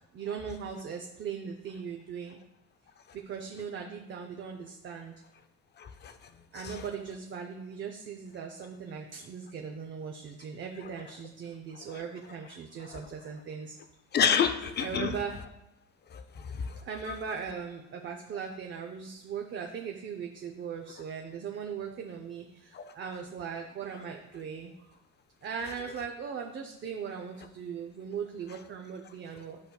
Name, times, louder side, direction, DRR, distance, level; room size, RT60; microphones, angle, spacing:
voice 1, 0.1-2.4 3.3-5.1 6.5-13.8 14.8-15.4 16.8-25.0 25.4-29.6, right 6 dB, 40° right, 3 dB, 0.6 m, -39 dB
voice 2, 5.8-6.1 6.6-6.8 12.9-13.0 14.1-15.1 16.1-16.8 17.1-17.2 22.7-22.9, left 7 dB, 35° left, 9 dB, 0.5 m, -29 dB
10.5 x 5.1 x 2.3 m, 0.91 s
cardioid pair, 120°, 31 cm